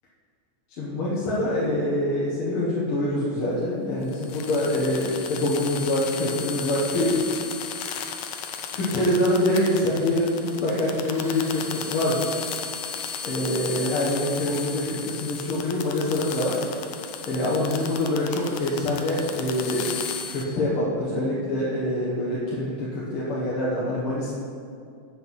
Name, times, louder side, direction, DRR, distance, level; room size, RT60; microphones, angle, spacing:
voice 1, 0.8-7.2 8.7-12.3 13.2-16.6 17.2-20.0 20.3-24.3, left 1 dB, 55° left, -8 dB, 1.9 m, -25 dB
sound 1, 4.0-20.5, left 7 dB, 85° left, 2.0 m, -35 dB
8.2 x 7.7 x 5.6 m, 2.3 s
omnidirectional pair, 3.3 m